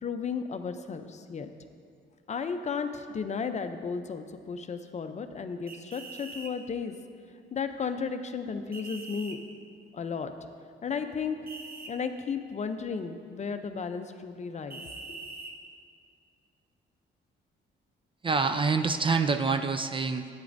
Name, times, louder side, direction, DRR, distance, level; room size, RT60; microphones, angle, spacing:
voice 1, 0.0-1.5 2.3-6.9 7.5-9.4 9.9-10.3 10.8-11.5 11.9-14.8 15.1-15.2, left 5 dB, 35° left, 8 dB, 0.5 m, -34 dB
sound 1, 5.7-6.5 8.7-9.4 11.5-11.9 14.7-15.5, right 3 dB, 50° right, 1.0 m, -43 dB
voice 2, 18.2-20.3, right 4 dB, 25° right, 8 dB, 0.4 m, -26 dB
11.0 x 8.8 x 2.6 m, 2.2 s
cardioid pair, 90°, 20 cm